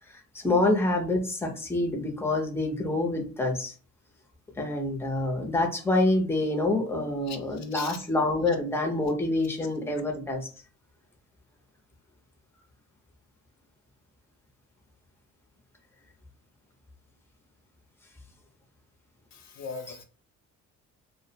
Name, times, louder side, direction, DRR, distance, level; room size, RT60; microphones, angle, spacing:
voice 1, 0.3-3.7 4.6-10.5, left 2 dB, 10° left, 0.7 m, -27 dB
voice 2, 7.3-8.0 19.3-20.0, left 5 dB, 60° left, 0.6 m, -40 dB
2.3 x 2.1 x 2.7 m
cardioid pair, 90°, 30 cm